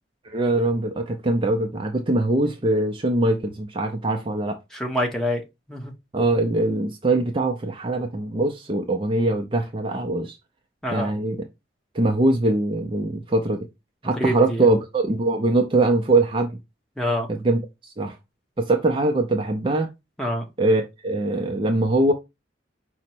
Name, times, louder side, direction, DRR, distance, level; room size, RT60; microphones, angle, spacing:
voice 1, 0.2-4.6 6.1-10.3 10.9-11.4 11.9-13.6 14.0-16.5 17.3-18.2 18.6-19.9 20.6-22.1, right 2 dB, 25° right, 0.4 m, -22 dB
voice 2, 4.7-5.4 5.7-5.9 10.8-11.1 14.2-14.7 17.0-17.3 20.2-20.4, equal, 5° left, 0.8 m, -26 dB
5.0 x 2.1 x 4.3 m
head